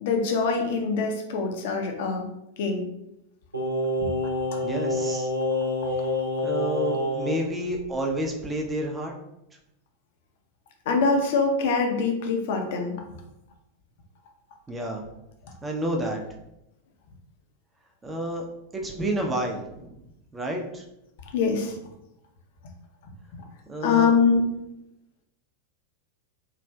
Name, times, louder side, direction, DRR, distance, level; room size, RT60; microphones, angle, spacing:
voice 1, 0.0-2.3 2.6-2.9 4.0-4.1 4.5-4.6 10.9-13.0 21.3-21.8 23.8-24.5, left 4 dB, 50° left, 3 dB, 0.5 m, -24 dB
Singing, 3.5-7.4 7.7-7.8, left 1 dB, 85° right, 0.5 m, -27 dB
voice 2, 4.6-5.3 6.4-9.1 14.7-15.1 15.6-16.2 18.0-18.4 18.7-20.0 20.3-20.8 23.7-24.1, right 1 dB, 15° right, 2 dB, 0.5 m, -30 dB
3.2 x 2.4 x 2.2 m, 0.85 s
figure-of-eight pair, 90°, 0 cm